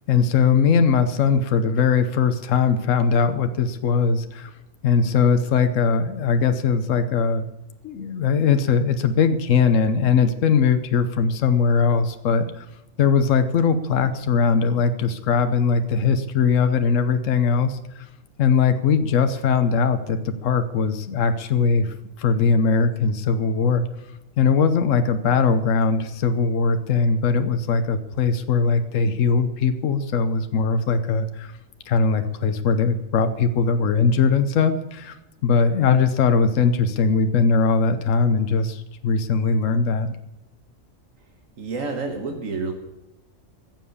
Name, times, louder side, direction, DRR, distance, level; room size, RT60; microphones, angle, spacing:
voice 1, 0.1-4.5 4.8-7.5 7.8-12.7 13.0-18.0 18.4-23.8 24.4-31.5 31.9-35.1 35.4-40.2, left 5 dB, 70° left, 9 dB, 1.3 m, -20 dB
voice 2, 41.6-42.7, right 4 dB, 75° right, 5 dB, 1.7 m, -28 dB
15.0 x 7.5 x 8.4 m, 0.98 s
omnidirectional pair, 1.4 m